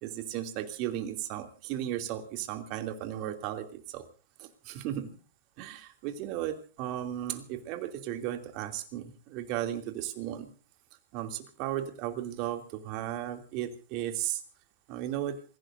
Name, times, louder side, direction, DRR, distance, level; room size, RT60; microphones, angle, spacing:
voice 1, 0.0-4.1 4.4-5.1 5.6-10.5 11.1-14.4 14.9-15.4, right 12 dB, 50° right, 5 dB, 2.8 m, -35 dB
27.0 x 16.5 x 2.7 m, 0.36 s
hypercardioid pair, 115°, 0 cm